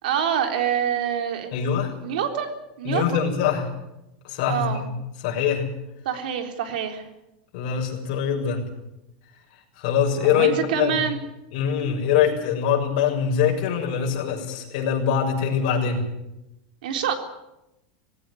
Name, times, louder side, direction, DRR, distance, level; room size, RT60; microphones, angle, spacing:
voice 1, 0.0-1.7 2.0-3.2 4.5-4.8 6.1-7.0 10.2-11.2 16.8-17.1, right 8 dB, 85° right, 6 dB, 3.6 m, -26 dB
voice 2, 1.5-1.9 2.8-3.7 4.2-4.9 5.2-5.7 7.5-8.6 9.8-11.0 11.5-16.0, left 8 dB, 60° left, 0 dB, 6.7 m, -23 dB
19.5 x 16.5 x 9.8 m, 0.91 s
supercardioid pair, 155°, 5 cm